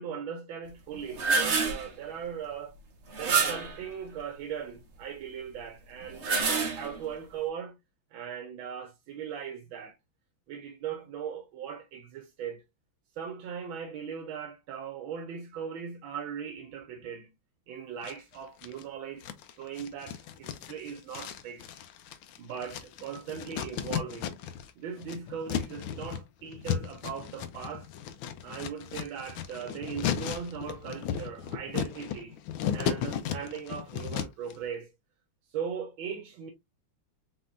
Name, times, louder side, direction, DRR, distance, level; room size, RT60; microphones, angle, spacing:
voice 1, 0.0-2.8 3.2-7.8 8.1-10.0 10.5-12.6 13.2-17.3 17.7-19.3 19.6-21.8 22.4-24.5 24.8-27.9 28.4-32.4 32.7-34.9 35.5-36.5, right 7 dB, 85° right, 1.5 m, -39 dB
sound 1, 0.9-1.9 3.1-3.8 6.0-7.1, right 4 dB, 45° right, 1.1 m, -27 dB
sound 2, 18.0-18.8 19.2-24.7 25.0-34.5, left 9 dB, 90° left, 1.5 m, -35 dB
4.3 x 4.3 x 2.5 m
omnidirectional pair, 2.2 m